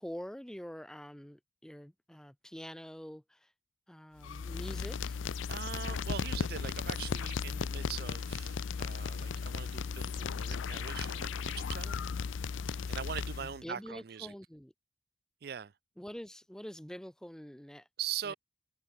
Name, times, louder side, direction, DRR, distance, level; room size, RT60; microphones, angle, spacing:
voice 1, 0.0-3.5 3.9-5.2 13.4-14.7 16.0-17.9 18.3-18.4, equal, 5° left, 0.4 m, -46 dB
sound 1, 4.2-13.6, left 5 dB, 85° left, 0.5 m, -36 dB
voice 2, 5.5-12.0 12.9-14.3 15.4-15.7 18.0-18.3, right 8 dB, 55° right, 0.4 m, -42 dB
head